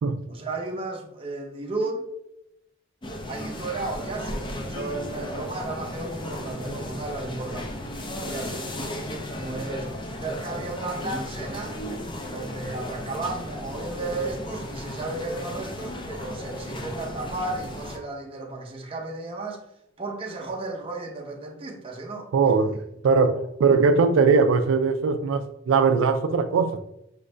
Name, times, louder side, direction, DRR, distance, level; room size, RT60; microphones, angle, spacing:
voice 1, 0.3-2.0 3.3-7.9 8.2-8.6 9.4-9.9 10.2-11.8 12.3-19.6 20.0-22.3, right 2 dB, 30° right, 0.7 m, -34 dB
sound 1, 3.0-18.0, left 1 dB, 25° left, 0.5 m, -35 dB
voice 2, 22.3-22.8 23.0-26.8, right 5 dB, 85° right, 0.3 m, -20 dB
5.1 x 2.5 x 3.2 m
head